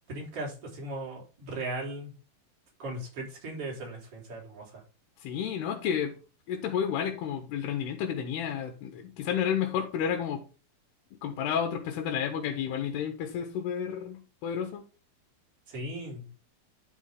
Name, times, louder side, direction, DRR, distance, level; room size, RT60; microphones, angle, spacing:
voice 1, 0.1-2.1 2.8-4.8 15.7-16.3, right 1 dB, 35° right, -2 dB, 4.9 m, -37 dB
voice 2, 5.2-6.2 6.5-10.4 11.2-14.8, left 8 dB, 85° left, 4 dB, 3.4 m, -31 dB
10.5 x 6.3 x 3.6 m, 0.33 s
omnidirectional pair, 4.6 m